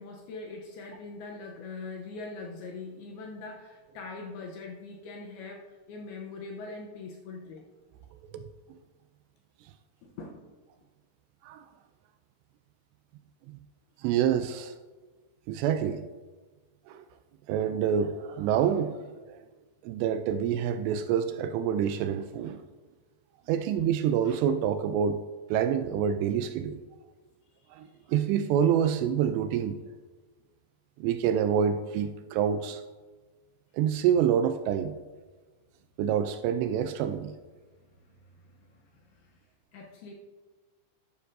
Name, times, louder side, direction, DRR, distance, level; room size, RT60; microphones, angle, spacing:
voice 1, 0.0-7.7 10.0-10.5 37.8-39.4 39.7-40.1, left 3 dB, 75° left, 2.4 m, -42 dB
voice 2, 14.0-14.7 15.5-16.0 16.9-17.0 17.5-19.4 19.8-22.6 23.5-25.2 25.5-26.8 27.7-29.8 31.0-32.8 33.7-34.9 36.0-37.3, right 8 dB, 85° right, 2.6 m, -27 dB
11.5 x 11.5 x 2.6 m
omnidirectional pair, 5.2 m